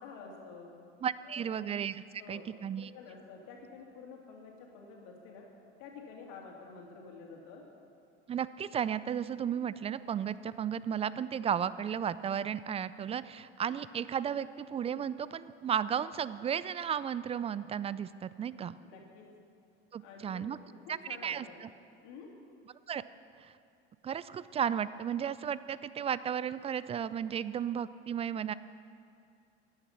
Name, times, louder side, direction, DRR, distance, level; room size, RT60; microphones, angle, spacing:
voice 1, 0.0-0.7 1.2-1.5 2.2-2.5 2.8-5.4 5.8-7.6 18.8-19.3 20.0-21.6 22.0-22.3, left 4 dB, 60° left, 0 dB, 2.8 m, -49 dB
voice 2, 1.0-2.9 8.3-18.8 19.9-20.6 21.2-21.7 22.9-23.0 23.4-23.5 24.0-28.5, right 8 dB, 20° right, 16 dB, 0.3 m, -34 dB
14.5 x 9.9 x 5.7 m, 2.4 s
hypercardioid pair, 75°, 34 cm